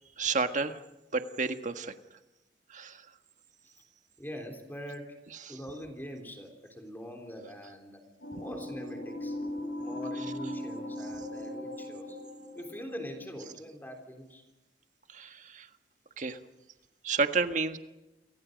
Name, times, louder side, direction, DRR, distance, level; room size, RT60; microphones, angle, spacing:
voice 1, 0.2-0.8 1.1-1.9 2.7-3.0 5.5-5.6 15.1-15.7 16.2-16.4 17.0-17.8, right 4 dB, 45° right, 7 dB, 1.6 m, -30 dB
voice 2, 4.2-5.2 5.5-8.0 8.3-9.4 9.8-12.2 12.5-14.4 16.3-16.4, equal, 10° left, 3 dB, 3.4 m, -43 dB
sound 1, 8.2-13.5, left 1 dB, 80° left, 6.4 m, -39 dB
30.0 x 24.5 x 5.3 m, 0.98 s
head